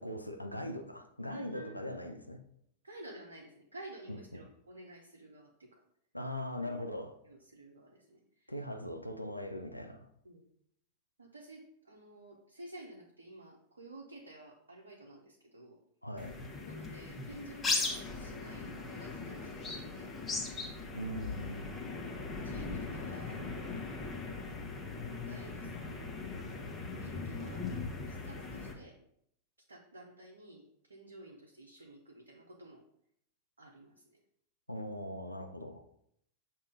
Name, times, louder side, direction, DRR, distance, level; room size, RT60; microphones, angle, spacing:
voice 1, 0.0-2.4 4.1-4.4 6.1-7.1 8.5-10.1 16.0-16.4 20.9-21.7 34.7-35.8, left 1 dB, 85° left, 6 dB, 0.5 m, -40 dB
voice 2, 1.3-2.2 2.8-5.8 6.6-6.7 7.2-8.6 10.2-10.4 11.2-15.8 16.6-20.8 21.7-23.5 24.5-26.1 26.9-29.0 29.7-32.8 33.6-34.2, right 2 dB, 75° right, -1 dB, 0.8 m, -52 dB
sound 1, 16.2-28.7, left 3 dB, 20° left, 1.2 m, -39 dB
6.7 x 2.9 x 5.0 m, 0.72 s
figure-of-eight pair, 90°, 0 cm